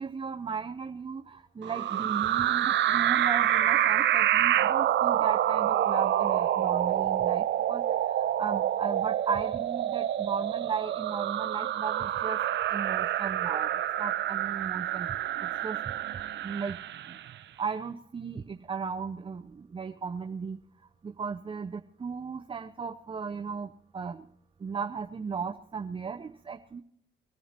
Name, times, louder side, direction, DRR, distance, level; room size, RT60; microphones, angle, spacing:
voice 1, 0.0-12.4 12.7-15.1 15.4-15.8 16.4-16.8 17.1-17.2 17.6-20.6 21.0-24.3 24.6-26.8, right 5 dB, 25° right, 4 dB, 0.6 m, -36 dB
sound 1, 1.6-17.3, right 12 dB, 65° right, 0.6 m, -27 dB
24.0 x 14.5 x 2.9 m, 0.68 s
cardioid pair, 90°, 20 cm